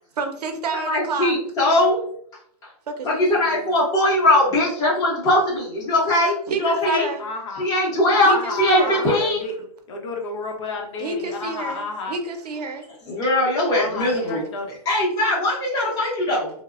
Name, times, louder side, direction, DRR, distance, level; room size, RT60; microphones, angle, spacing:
voice 1, 0.2-1.3 2.9-3.7 6.5-7.2 8.3-9.0 11.0-12.9, right 4 dB, 75° right, 0.6 m, -29 dB
voice 2, 0.7-2.0 3.0-7.1 7.6-9.4 13.1-14.4 14.9-16.5, left 1 dB, 20° left, 0.8 m, -20 dB
voice 3, 7.2-7.6 8.1-9.5 9.9-12.2 13.7-14.8, left 3 dB, 50° left, 0.7 m, -31 dB
3.0 x 2.1 x 2.4 m
hypercardioid pair, 155°, 20 cm